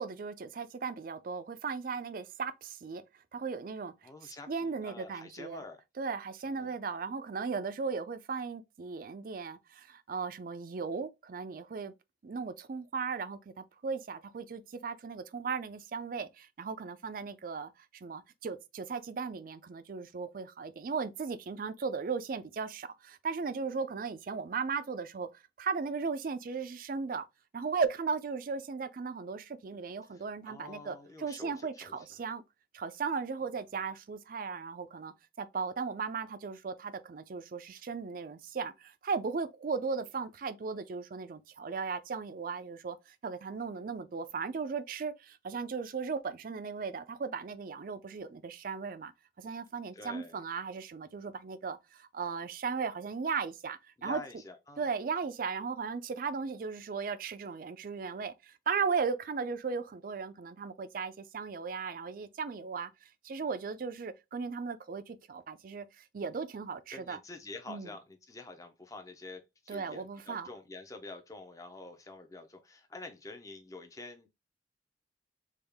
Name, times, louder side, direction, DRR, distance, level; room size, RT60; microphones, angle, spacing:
voice 1, 0.0-3.0 3.3-3.9 4.2-5.6 6.0-11.9 12.2-25.3 25.6-27.3 27.5-32.4 32.7-49.1 49.4-54.2 54.8-67.2 67.7-67.9 69.7-70.5, right 5 dB, 50° right, 0.4 m, -36 dB
voice 2, 4.0-5.8 6.5-6.8 30.1-32.0 49.9-50.4 54.0-54.9 66.9-74.3, left 3 dB, 20° left, 0.5 m, -47 dB
3.5 x 2.3 x 3.4 m
head